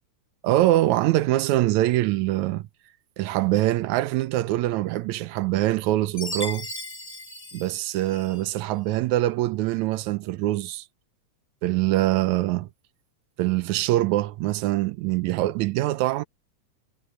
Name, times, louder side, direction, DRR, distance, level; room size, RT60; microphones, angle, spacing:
voice 1, 0.4-2.6 3.2-6.7 7.5-10.9 11.6-12.7 13.4-16.2, right 16 dB, 85° right, 2.0 m, -23 dB
Chime, 6.2-8.5, left 1 dB, 15° left, 1.5 m, -36 dB
omnidirectional pair, 3.4 m